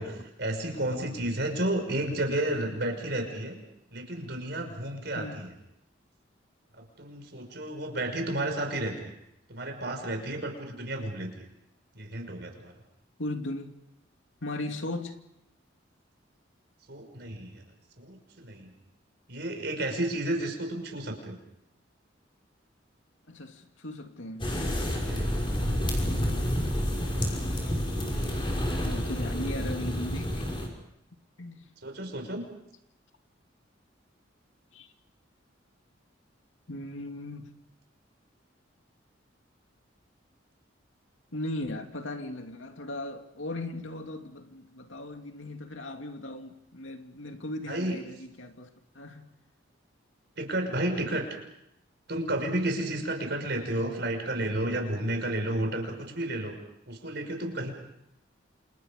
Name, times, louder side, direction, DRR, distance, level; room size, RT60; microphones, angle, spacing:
voice 1, 0.0-3.6 3.9-5.5 7.0-9.2 9.5-11.5 11.9-12.7 16.9-17.5 18.0-18.7 19.3-21.4 25.1-25.4 31.8-32.5 47.7-48.0 50.4-51.3 52.1-56.5 56.9-57.7, right 1 dB, 60° right, 5.9 m, -32 dB
voice 2, 13.2-13.7 14.4-15.2 23.3-24.6 26.0-26.5 28.8-30.5 31.4-31.7 34.7-34.9 36.7-37.5 41.3-48.7 48.9-49.3, left 1 dB, 85° left, 2.6 m, -37 dB
sound 1, 24.4-30.7, equal, 25° left, 5.8 m, -29 dB
28.5 x 28.0 x 5.4 m
head